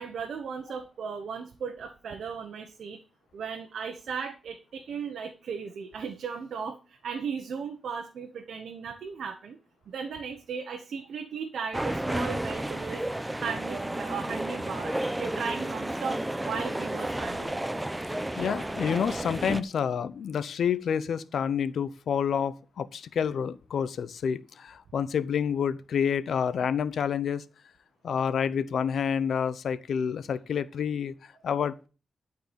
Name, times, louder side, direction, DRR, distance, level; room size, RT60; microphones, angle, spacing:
voice 1, 0.0-3.0 3.3-9.6 9.9-13.0 13.4-17.7, right 6 dB, 85° right, 1.2 m, -36 dB
sound 1, 11.7-19.6, right 1 dB, 15° right, 1.0 m, -32 dB
voice 2, 18.4-27.4 28.0-31.9, left 7 dB, 85° left, 0.7 m, -28 dB
12.0 x 4.8 x 6.9 m
cardioid pair, 55°, 0 cm